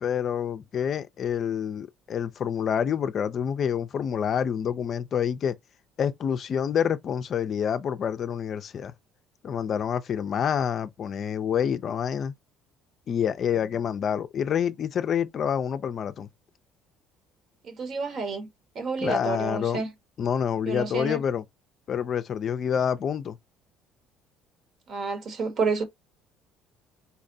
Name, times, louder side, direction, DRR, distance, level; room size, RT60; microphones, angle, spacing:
voice 1, 0.0-5.5 6.0-8.9 9.4-12.3 13.1-16.3 19.0-19.8 20.2-21.4 21.9-23.4, left 8 dB, 50° left, 0.3 m, -27 dB
voice 2, 17.6-18.5 18.7-19.9 20.7-21.2 24.9-25.8, right 4 dB, 55° right, 1.1 m, -29 dB
4.0 x 2.1 x 2.6 m
hypercardioid pair, 65°, 0 cm